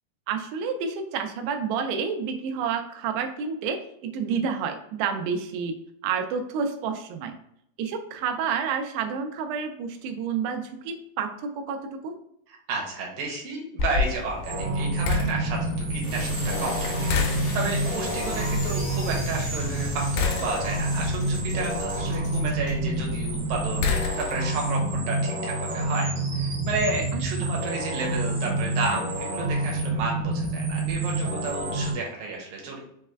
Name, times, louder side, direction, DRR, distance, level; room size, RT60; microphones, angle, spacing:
voice 1, 0.3-5.7 6.0-7.4 7.8-12.2 27.4-27.5, right 6 dB, 90° right, 6 dB, 2.7 m, -29 dB
voice 2, 12.7-23.9 24.2-32.8, right 3 dB, 75° right, -1 dB, 2.3 m, -32 dB
sound 1, 13.8-24.7, left 5 dB, 85° left, 2.7 m, -32 dB
sound 2, 13.9-24.0, left 4 dB, 70° left, 1.3 m, -38 dB
sound 3, 14.4-31.9, right 2 dB, 55° right, 1.3 m, -28 dB
6.4 x 2.2 x 3.3 m, 0.73 s
omnidirectional pair, 4.8 m